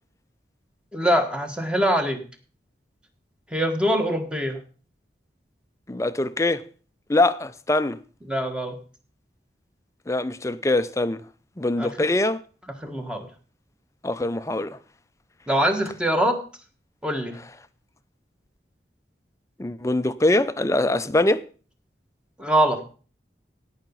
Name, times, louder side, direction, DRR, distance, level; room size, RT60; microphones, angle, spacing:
voice 1, 0.9-2.2 3.5-4.6 8.3-8.7 11.8-11.9 12.8-13.3 15.5-16.4 17.0-17.3 22.4-22.8, equal, 5° right, 1.4 m, -23 dB
voice 2, 5.9-6.6 7.1-8.0 10.1-11.2 11.6-12.4 14.0-14.8 19.6-21.4, left 2 dB, 15° left, 0.5 m, -23 dB
16.5 x 5.9 x 5.4 m
head